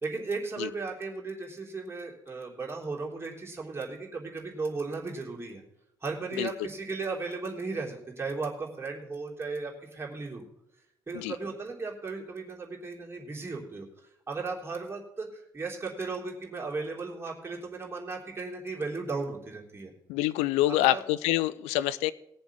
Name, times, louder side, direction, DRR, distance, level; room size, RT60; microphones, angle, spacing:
voice 1, 0.0-5.6 6.0-10.4 11.1-13.9 14.3-19.9 20.7-21.0, right 4 dB, 20° right, -2 dB, 3.3 m, -36 dB
voice 2, 20.1-22.1, left 15 dB, 65° left, 16 dB, 0.5 m, -26 dB
17.5 x 7.0 x 6.1 m, 0.81 s
figure-of-eight pair, 40°, 12 cm